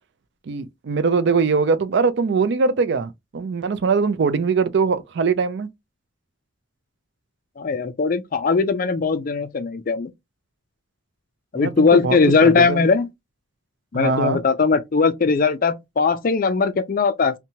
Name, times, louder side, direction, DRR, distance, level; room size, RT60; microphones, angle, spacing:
voice 1, 0.5-5.7 11.5-12.9 13.9-14.4, right 5 dB, 60° right, 0.4 m, -22 dB
voice 2, 7.6-10.1 11.5-13.1 13.9-17.3, left 4 dB, 45° left, 0.4 m, -19 dB
2.8 x 2.1 x 2.7 m
head